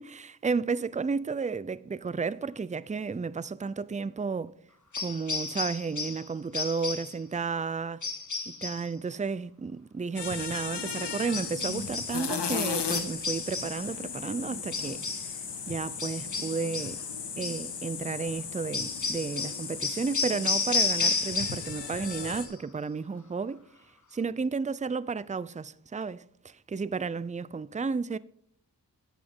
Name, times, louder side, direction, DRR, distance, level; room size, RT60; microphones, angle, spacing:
voice 1, 0.0-4.5 5.0-8.0 8.5-15.0 15.7-17.0 17.4-23.6 24.1-28.2, right 5 dB, 20° right, 0.5 m, -32 dB
sound 1, 4.9-6.3 6.5-7.2 8.0-8.9 11.3-12.2 12.9-13.8 14.7-15.3 16.0-17.0 17.4-17.7 18.7-21.8 22.0-22.5, left 4 dB, 45° left, 1.6 m, -32 dB
sound 2, 10.2-22.5, left 6 dB, 80° left, 1.5 m, -36 dB
11.0 x 8.5 x 3.7 m
cardioid pair, 55°, 41 cm